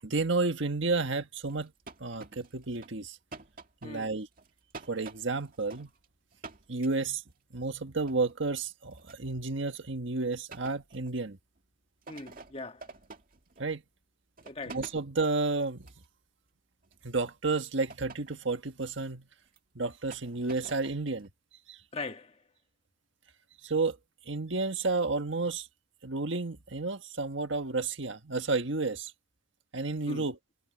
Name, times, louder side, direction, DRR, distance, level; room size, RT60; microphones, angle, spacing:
voice 1, 0.0-1.7 2.0-3.2 3.8-4.3 4.9-5.9 6.7-7.2 7.5-11.4 13.6-13.8 14.7-15.9 17.0-19.3 19.7-21.3 21.7-21.8 23.6-24.0 24.3-25.7 26.0-29.1 29.7-30.4, right 3 dB, 70° right, 1.6 m, -31 dB
sound 1, 1.5-3.0 3.3-6.1 6.3-7.3 8.1-8.4 8.9-9.3 10.5-11.2 11.6-11.7 12.0-13.8 14.4-15.1 15.8-16.1 16.8-17.0 17.9-18.5 18.8-19.1 19.5-19.6 20.1-21.3, right 3 dB, 45° right, 2.2 m, -49 dB
voice 2, 12.1-12.8 14.4-14.8 21.9-22.4 30.1-30.3, left 3 dB, 30° left, 1.5 m, -40 dB
head